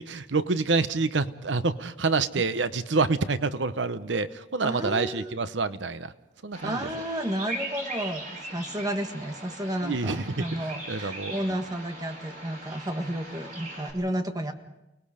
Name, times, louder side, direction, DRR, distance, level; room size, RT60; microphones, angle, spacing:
voice 1, 0.0-6.1 6.4-6.9 9.8-10.4 10.9-11.3, right 3 dB, 90° right, 12 dB, 0.9 m, -27 dB
voice 2, 4.6-5.4 6.6-14.5, right 1 dB, 20° right, 6 dB, 1.6 m, -32 dB
Bird vocalization bird call bird song, 6.5-13.9, right 2 dB, 50° right, 4.5 m, -40 dB
29.5 x 19.5 x 5.1 m, 0.95 s
head